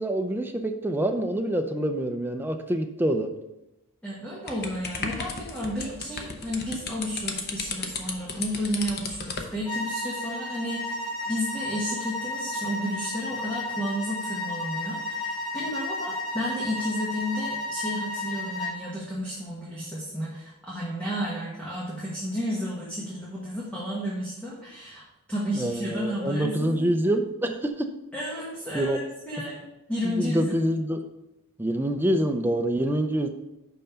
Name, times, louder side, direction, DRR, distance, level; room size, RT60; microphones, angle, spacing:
voice 1, 0.0-3.3 25.6-27.9 28.7-29.0 30.0-31.0 31.6-33.3, right 1 dB, 10° right, 5 dB, 0.5 m, -26 dB
voice 2, 4.0-25.0 25.3-26.9 28.1-29.6 29.9-30.6, equal, 5° left, -6 dB, 1.3 m, -32 dB
sound 1, 4.5-9.5, left 4 dB, 45° left, 0.8 m, -34 dB
sound 2, 9.7-18.8, left 2 dB, 80° left, 2.2 m, -33 dB
5.6 x 5.3 x 5.7 m, 0.92 s
head